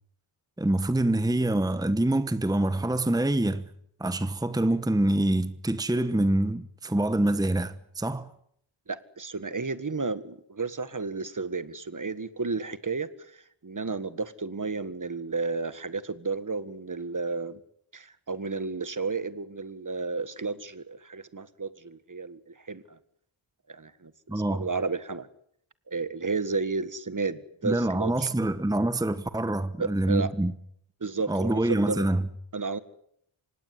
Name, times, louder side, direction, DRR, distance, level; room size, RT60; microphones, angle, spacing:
voice 1, 0.6-3.7 4.0-8.3 24.3-24.7 27.6-30.5 31.3-32.3, right 1 dB, 10° right, 1.1 m, -26 dB
voice 2, 8.9-17.6 17.9-23.0 23.7-25.3 25.9-28.3 29.8-30.3 31.0-32.1 32.5-32.8, right 4 dB, 40° right, 1.7 m, -32 dB
25.5 x 19.0 x 9.9 m
wide cardioid pair, 95°, 48 cm